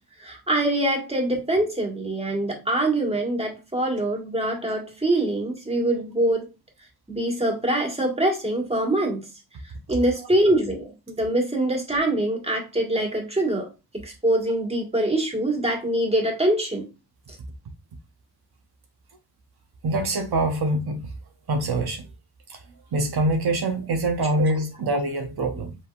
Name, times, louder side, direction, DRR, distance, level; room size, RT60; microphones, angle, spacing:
voice 1, 0.2-6.5 7.1-9.2 9.9-16.8 24.2-24.3, right 1 dB, 15° right, 1.7 m, -24 dB
voice 2, 19.8-21.1 21.5-22.0 22.5-22.6 22.9-25.8, right 2 dB, 70° right, 0.8 m, -24 dB
5.4 x 3.3 x 2.5 m
wide cardioid pair, 80°, 39 cm